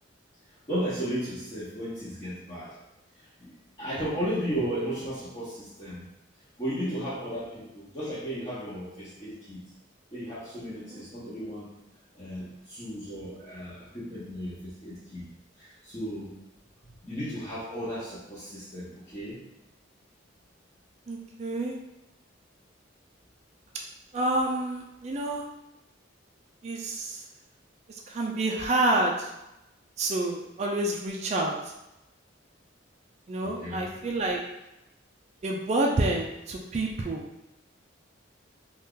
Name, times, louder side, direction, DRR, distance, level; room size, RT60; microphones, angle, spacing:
voice 1, 0.7-2.7 3.4-3.5 3.8-6.0 6.6-9.6 10.1-11.7 12.1-15.3 15.6-16.3 17.0-19.3 33.4-33.9, equal, 25° left, -12 dB, 0.8 m, -34 dB
voice 2, 21.1-21.8 24.1-25.5 26.6-27.2 27.9-29.3 30.0-31.6 33.3-34.4 35.4-37.2, right 2 dB, 35° right, 0 dB, 0.3 m, -28 dB
2.8 x 2.3 x 3.6 m, 0.92 s
head